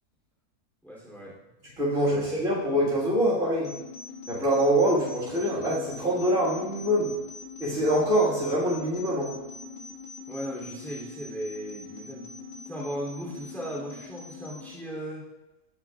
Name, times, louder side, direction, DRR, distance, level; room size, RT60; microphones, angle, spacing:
voice 1, 0.8-1.3 2.0-2.2 10.3-12.3 12.7-15.2, equal, ahead, -5 dB, 2.9 m, -37 dB
voice 2, 1.8-3.7 4.3-7.1 7.6-9.3, equal, 55° right, -7 dB, 2.3 m, -24 dB
sound 1, 3.6-14.7, left 4 dB, 85° left, 2.4 m, -43 dB
17.0 x 5.9 x 2.4 m, 1.0 s
omnidirectional pair, 1.7 m